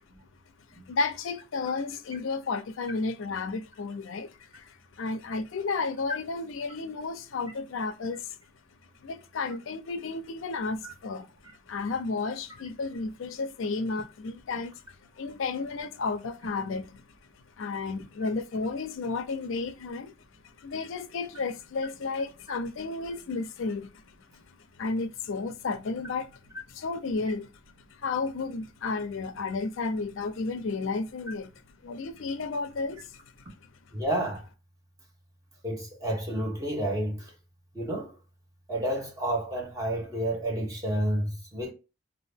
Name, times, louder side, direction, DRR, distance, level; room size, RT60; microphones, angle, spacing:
voice 1, 0.9-8.4 9.0-11.3 11.7-14.8 15.2-17.0 17.6-20.1 20.6-23.9 24.8-26.3 26.7-27.5 28.0-31.5 31.8-33.1, left 4 dB, 65° left, 0.4 m, -32 dB
voice 2, 33.9-34.4 35.6-37.2 37.7-38.1 38.7-41.7, right 1 dB, 15° right, 0.9 m, -30 dB
2.7 x 2.5 x 3.3 m
head